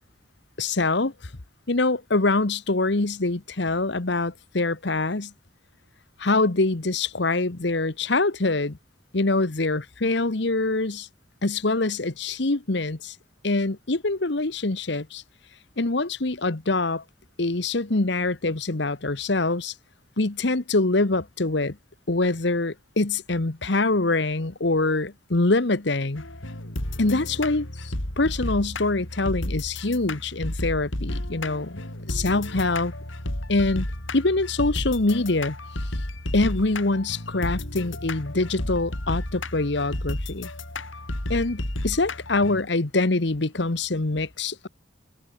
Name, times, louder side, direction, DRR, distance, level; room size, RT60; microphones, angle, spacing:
voice 1, 0.6-1.1 1.7-5.3 6.2-8.8 9.1-11.1 11.4-13.1 13.4-15.2 15.8-17.0 17.4-19.7 20.2-21.8 22.1-26.2 27.0-32.9 33.5-33.9 34.1-35.6 36.3-40.5 41.3-44.7, left 2 dB, 60° left, 1.2 m, -24 dB
sound 1, 26.2-42.6, left 1 dB, 80° left, 4.1 m, -32 dB
head